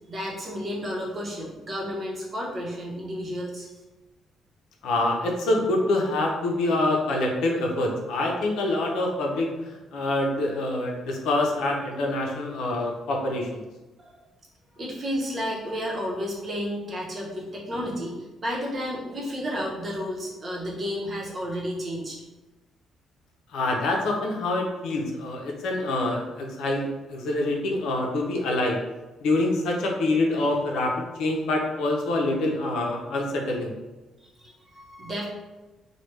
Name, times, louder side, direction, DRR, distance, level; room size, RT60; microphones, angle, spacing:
voice 1, 0.1-3.7 14.0-14.1 14.8-22.2 34.4-35.3, equal, 35° right, -3 dB, 0.9 m, -32 dB
voice 2, 4.8-13.6 23.5-28.8 29.2-30.9 31.2-33.7, left 2 dB, 85° left, 0 dB, 0.6 m, -26 dB
3.2 x 2.2 x 3.1 m, 1.1 s
cardioid pair, 125°, 0 cm